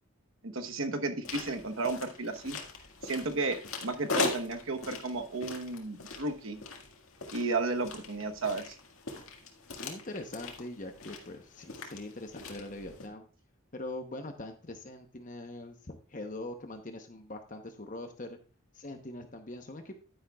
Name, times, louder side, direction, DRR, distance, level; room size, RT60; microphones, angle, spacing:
voice 1, 0.4-2.6 3.0-6.6 7.3-8.7, right 3 dB, 75° right, 6 dB, 1.1 m, -33 dB
sound 1, 1.2-13.1, left 4 dB, 85° left, 1.9 m, -40 dB
voice 2, 9.8-13.3 13.7-18.4 18.7-19.9, left 2 dB, 40° left, 6 dB, 0.9 m, -42 dB
10.5 x 10.0 x 2.3 m, 0.36 s
head